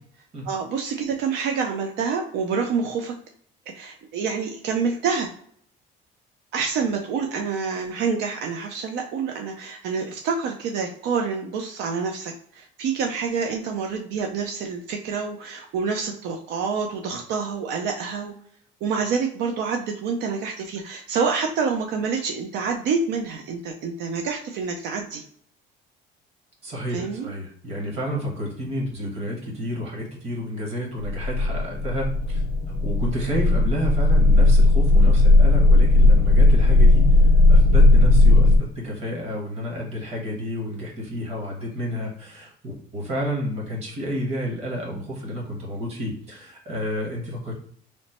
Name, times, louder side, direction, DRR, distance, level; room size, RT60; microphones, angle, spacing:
voice 1, 0.5-3.1 3.7-5.3 6.5-18.3 18.8-25.2 26.9-27.3, right 5 dB, 75° right, 2 dB, 0.4 m, -27 dB
voice 2, 26.6-32.4 32.8-47.5, equal, 35° right, -1 dB, 1.1 m, -30 dB
sound 1, 31.0-38.6, left 2 dB, 35° left, 0.4 m, -16 dB
3.1 x 2.0 x 4.0 m, 0.62 s
cardioid pair, 160°, 18 cm